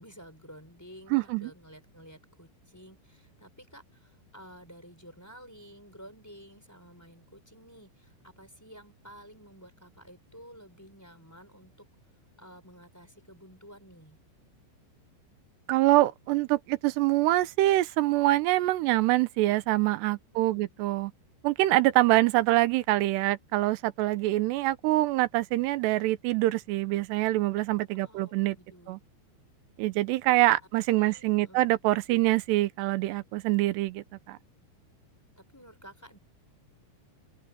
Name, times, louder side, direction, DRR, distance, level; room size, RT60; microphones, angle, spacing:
voice 1, 0.0-11.9 12.4-14.2 20.5-20.7 27.9-29.0 30.9-31.6 35.4-36.2, equal, 5° left, 3.4 m, -52 dB
voice 2, 1.1-1.5 15.7-21.1 21.4-28.6 28.9-29.0 29.8-34.4, right 17 dB, 80° right, 2.8 m, -25 dB
omnidirectional pair, 5.2 m